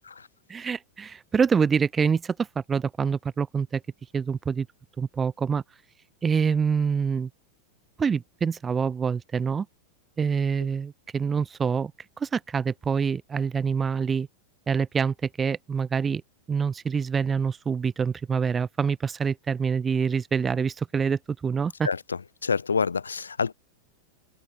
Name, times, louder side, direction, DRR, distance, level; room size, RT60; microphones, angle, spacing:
voice 1, 0.5-3.8 4.1-4.7 5.0-5.6 6.2-7.3 8.0-9.7 10.2-11.9 12.2-14.3 14.7-16.2 16.5-21.9, right 6 dB, 20° right, 0.8 m, -26 dB
voice 2, 22.4-23.5, left 5 dB, 75° left, 0.5 m, -26 dB
figure-of-eight pair, 90°, 0 cm